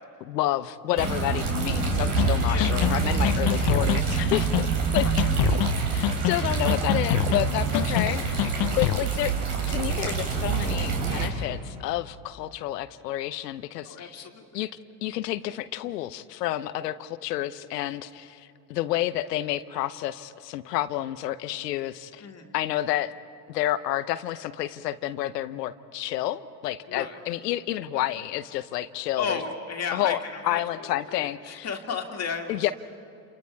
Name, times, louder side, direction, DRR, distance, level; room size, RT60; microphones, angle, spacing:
voice 1, 0.2-5.2 5.9-9.3 9.7-14.3 14.5-14.7 15.0-22.2 22.5-23.1 23.5-29.4 29.9-30.2 30.4-31.7 32.5-32.7, left 14 dB, 80° left, 13 dB, 0.9 m, -30 dB
sound 1, 1.0-11.3, right 4 dB, 60° right, 4.4 m, -26 dB
sound 2, 2.2-2.3 2.6-2.9 3.2-4.0 4.3-4.6 5.0-5.7 6.0-6.4 6.7-7.4 7.7-8.1 8.4-9.0, left 18 dB, 50° left, 0.7 m, -26 dB
voice 2, 2.3-2.9 4.9-5.1 8.6-8.8 13.9-14.4 22.2-22.6 26.9-27.2 29.2-32.7, left 5 dB, 30° left, 2 dB, 2.4 m, -34 dB
29.0 x 28.5 x 4.7 m, 2.4 s
hypercardioid pair, 85°, 48 cm